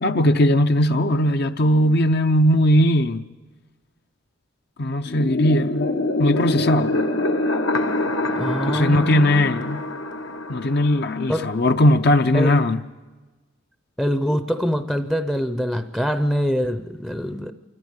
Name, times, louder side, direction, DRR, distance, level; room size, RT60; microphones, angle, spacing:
voice 1, 0.0-3.2 4.8-7.0 8.7-9.8 10.5-12.8, left 1 dB, 55° left, 0.7 m, -19 dB
sound 1, 5.1-11.6, left 2 dB, 75° left, 1.2 m, -25 dB
voice 2, 8.4-9.5 11.3-11.5 12.3-12.7 14.0-17.5, equal, ahead, 0.6 m, -24 dB
27.0 x 14.5 x 8.9 m
head